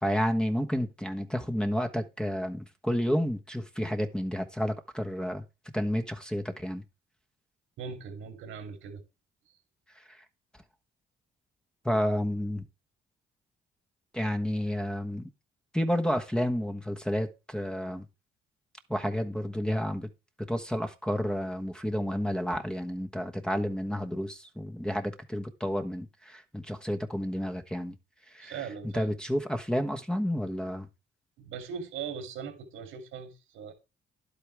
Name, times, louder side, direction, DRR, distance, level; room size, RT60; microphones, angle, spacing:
voice 1, 0.0-5.4 5.7-6.8 10.1-10.2 11.8-12.6 14.1-15.3 15.7-18.0 18.9-20.1 20.5-27.9 28.3-28.5 28.9-30.9, equal, 5° left, 1.2 m, -30 dB
voice 2, 7.8-9.0 28.4-29.1 31.4-33.7, right 6 dB, 90° right, 3.1 m, -40 dB
11.0 x 8.2 x 3.5 m
cardioid pair, 90°, 20 cm